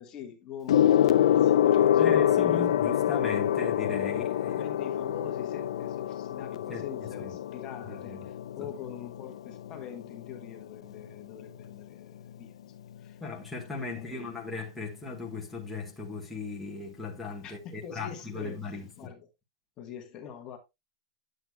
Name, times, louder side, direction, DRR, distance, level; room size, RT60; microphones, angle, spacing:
voice 1, 0.0-2.7 4.4-12.6 13.0-13.2 13.8-14.3 17.4-19.3 19.8-20.6, left 8 dB, 20° left, 1.2 m, -44 dB
Gong, 0.7-10.4 11.4-11.7, left 10 dB, 70° left, 0.5 m, -26 dB
voice 2, 2.0-4.6 6.7-7.4 7.8-8.2 8.6-8.7 13.2-19.1, left 3 dB, ahead, 1.3 m, -38 dB
10.0 x 7.7 x 2.2 m
supercardioid pair, 170°, 3 cm